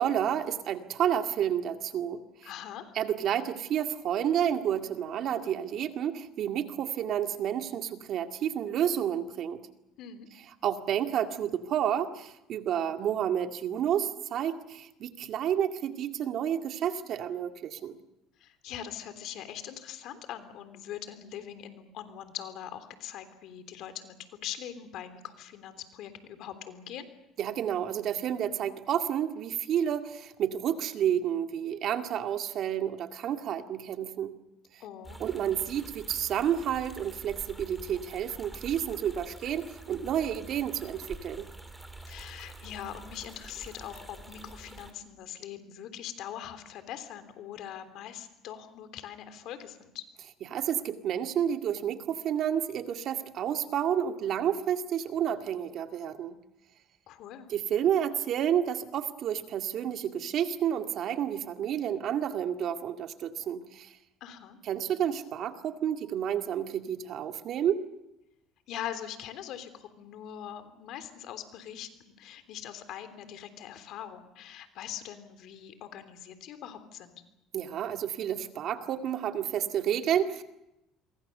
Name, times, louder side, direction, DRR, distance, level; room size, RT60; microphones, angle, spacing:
voice 1, 0.0-2.5 2.9-9.6 10.6-18.0 27.4-34.3 35.2-41.5 50.5-56.4 57.5-63.9 64.7-67.8 77.5-80.4, right 9 dB, 55° right, 6 dB, 2.1 m, -30 dB
voice 2, 2.4-2.9 10.0-10.3 18.4-27.1 34.8-35.2 42.1-50.0 57.1-57.5 64.2-64.6 68.7-77.2, left 10 dB, 65° left, 10 dB, 3.3 m, -42 dB
sound 1, 35.0-44.9, right 1 dB, 5° right, 3.8 m, -47 dB
27.0 x 23.5 x 6.8 m, 0.90 s
supercardioid pair, 100°, 0 cm